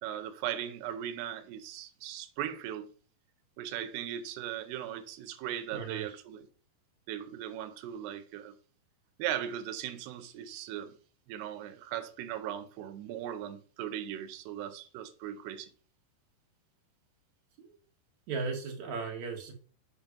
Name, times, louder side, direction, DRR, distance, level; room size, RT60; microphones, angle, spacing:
voice 1, 0.0-2.9 3.6-6.5 7.1-8.6 9.2-10.9 11.3-15.7, right 11 dB, 85° right, 2.9 m, -38 dB
voice 2, 5.7-6.1 17.6-17.8 18.3-19.5, right 4 dB, 55° right, 2.6 m, -36 dB
7.1 x 5.9 x 5.1 m
omnidirectional pair, 4.6 m